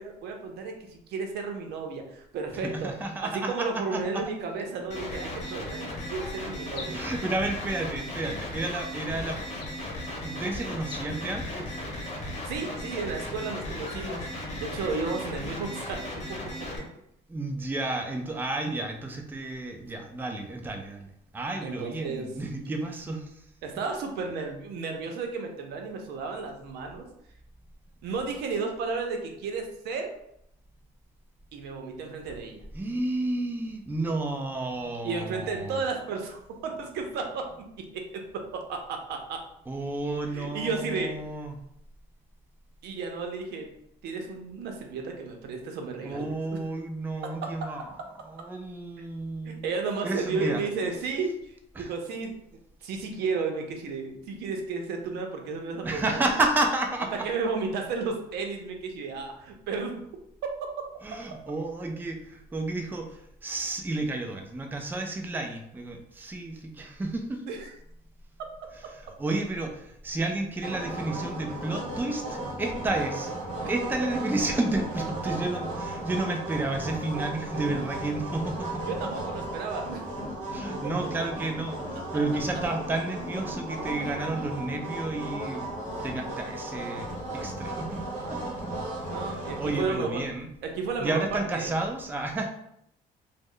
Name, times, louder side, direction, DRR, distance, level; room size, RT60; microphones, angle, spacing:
voice 1, 0.0-2.9 3.2-7.0 12.4-14.3 14.6-16.0 21.6-22.3 23.6-27.1 28.0-30.1 31.5-32.6 35.0-39.4 40.3-41.2 42.8-43.7 44.0-46.6 49.4-52.4 52.8-56.2 57.2-59.9 60.6-60.7 67.5-67.7 73.6-73.7 78.9-80.1 89.1-90.2 90.6-91.7, right 4 dB, 75° right, 3 dB, 0.6 m, -33 dB
voice 2, 2.6-4.3 6.8-9.4 10.2-11.8 17.3-23.3 32.7-35.8 39.7-41.6 46.0-47.9 48.2-49.6 50.0-50.6 51.8-51.9 55.8-57.3 61.0-67.4 68.9-78.8 80.5-85.6 86.0-88.0 88.3-88.6 89.3-90.5 91.0-92.5, right 2 dB, 10° right, 3 dB, 0.4 m, -31 dB
sound 1, 4.4-4.7 5.3-5.9 6.7-7.3 8.2-8.8 9.5-10.1 10.8-11.1, left 4 dB, 70° left, 0.7 m, -46 dB
sound 2, 4.9-16.8, left 1 dB, 40° left, 0.9 m, -36 dB
sound 3, 70.6-90.0, right 1 dB, 45° right, 1.2 m, -35 dB
3.1 x 2.1 x 3.7 m, 0.75 s
cardioid pair, 110°, 17 cm